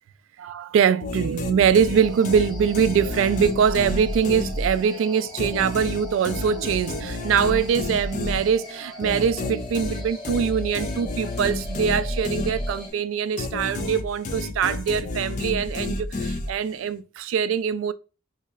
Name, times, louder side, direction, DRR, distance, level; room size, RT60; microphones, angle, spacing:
voice 1, 0.4-17.9, right 7 dB, 90° right, 0.3 m, -23 dB
future house, 1.0-5.0 5.4-13.0 13.4-16.8, left 2 dB, 40° left, 0.4 m, -30 dB
sound 1, 1.9-12.9, equal, ahead, 0.9 m, -41 dB
4.1 x 2.7 x 2.3 m
head